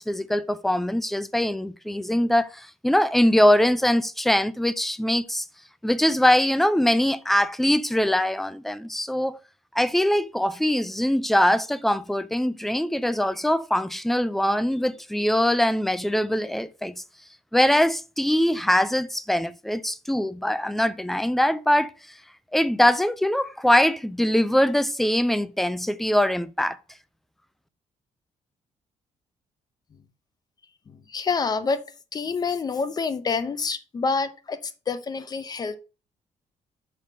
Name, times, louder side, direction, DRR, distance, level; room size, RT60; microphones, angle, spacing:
voice 1, 0.0-5.4 5.8-9.4 9.7-17.0 17.5-21.9 22.5-26.8, left 1 dB, ahead, 0.4 m, -22 dB
voice 2, 30.9-31.8 32.1-35.8, left 5 dB, 30° left, 0.7 m, -27 dB
5.8 x 5.4 x 5.2 m
cardioid pair, 155°, 14 cm